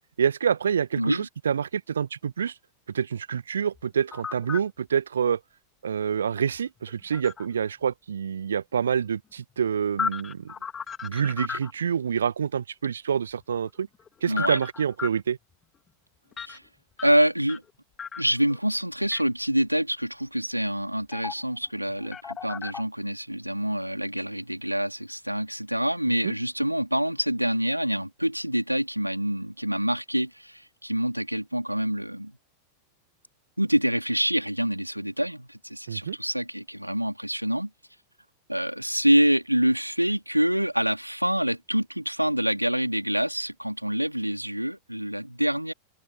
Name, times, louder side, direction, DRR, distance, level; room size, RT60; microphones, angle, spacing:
voice 1, 0.2-2.5 2.9-5.4 5.8-10.5 11.0-13.9 14.2-15.4 26.2-26.3 35.9-36.2, right 7 dB, 70° right, 1.7 m, -27 dB
sound 1, 3.8-4.7 6.4-7.5 9.5-11.9 13.4-15.2 16.3-16.6 17.0-17.7 18.0-18.6 19.1-19.2 21.1-21.6 21.9-22.8, left 7 dB, 20° left, 3.3 m, -35 dB
voice 2, 14.3-14.6 16.4-16.6 17.0-17.6 18.2-32.3 33.6-37.7 38.5-45.7, equal, 90° right, 3.9 m, -26 dB
open air
figure-of-eight pair, 90°, 0 cm